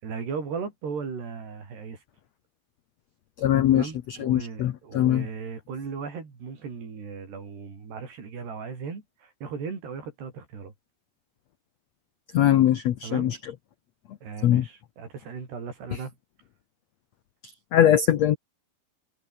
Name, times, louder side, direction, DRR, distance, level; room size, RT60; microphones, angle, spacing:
voice 1, 0.0-2.0 3.7-10.7 13.0-13.3 14.2-16.1, right 5 dB, 80° right, 7.8 m, -37 dB
voice 2, 3.4-5.3 12.3-13.5 14.4-14.7 17.7-18.4, left 11 dB, 85° left, 1.5 m, -21 dB
omnidirectional pair, 4.6 m